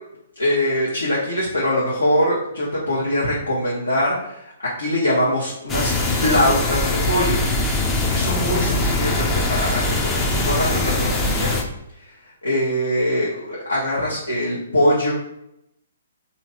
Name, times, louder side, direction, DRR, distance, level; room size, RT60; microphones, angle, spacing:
voice 1, 0.4-4.5 4.8-5.9 6.2-7.4 7.8-11.5 12.4-15.1, left 1 dB, 75° left, -7 dB, 1.0 m, -22 dB
sound 1, 5.7-11.6, left 2 dB, 15° left, 0.5 m, -22 dB
2.8 x 2.8 x 4.4 m, 0.82 s
figure-of-eight pair, 125°, 0 cm